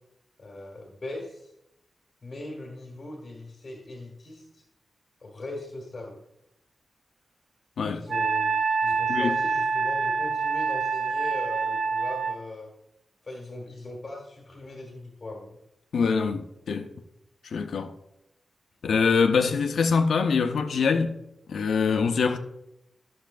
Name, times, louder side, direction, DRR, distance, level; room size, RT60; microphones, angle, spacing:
voice 1, 0.4-1.5 2.2-4.6 5.2-6.2 7.9-8.5 8.8-12.7 13.2-15.6, left 2 dB, 35° left, 1.5 m, -39 dB
Wind instrument woodwind instrument, 8.1-12.4, right 4 dB, 55° right, 0.4 m, -26 dB
voice 2, 15.9-16.9 17.4-17.9 18.8-21.1 21.5-22.4, left 5 dB, 85° left, 0.6 m, -24 dB
12.5 x 6.3 x 2.5 m
wide cardioid pair, 135°, 0 cm